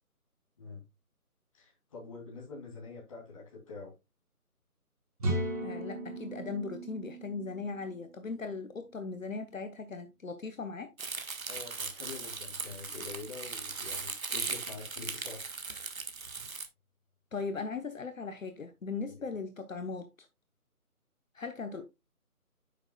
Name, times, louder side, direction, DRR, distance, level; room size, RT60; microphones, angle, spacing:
voice 1, 1.5-3.9 11.5-15.9, left 4 dB, 20° left, 3.0 m, -46 dB
sound 1, 5.2-9.0, right 1 dB, 25° right, 2.6 m, -37 dB
voice 2, 5.6-10.9 17.3-20.3 21.3-21.8, left 4 dB, 60° left, 1.1 m, -38 dB
Crumpling crinkling, 11.0-16.7, right 4 dB, 65° right, 1.5 m, -38 dB
9.7 x 6.8 x 2.3 m
figure-of-eight pair, 170°, 45 cm